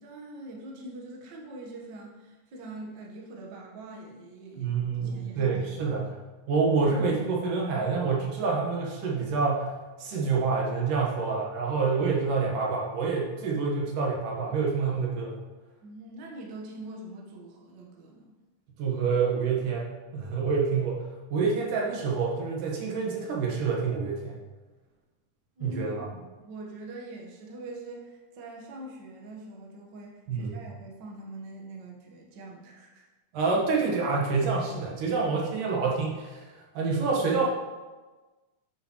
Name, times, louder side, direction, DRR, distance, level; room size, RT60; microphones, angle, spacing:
voice 1, 0.0-5.5 5.8-6.0 15.8-18.3 25.6-33.1, right 2 dB, 55° right, -1 dB, 1.3 m, -43 dB
voice 2, 4.6-6.2 6.5-9.7 10.0-15.4 18.8-21.0 21.3-24.4 25.6-26.0 30.3-30.6 33.3-37.5, right 4 dB, 85° right, -2 dB, 3.0 m, -27 dB
8.9 x 7.0 x 3.1 m, 1.2 s
omnidirectional pair, 3.6 m